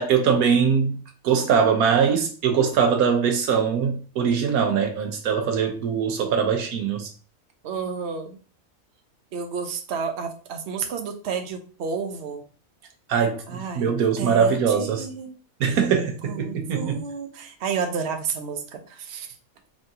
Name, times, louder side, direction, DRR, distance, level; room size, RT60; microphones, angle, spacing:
voice 1, 0.0-7.1 13.1-15.1 15.6-17.0, right 6 dB, 90° right, 1.3 m, -22 dB
voice 2, 7.6-8.4 9.3-12.4 13.5-15.3 16.2-19.3, right 6 dB, 60° right, 0.9 m, -31 dB
3.7 x 3.7 x 2.7 m
omnidirectional pair, 1.5 m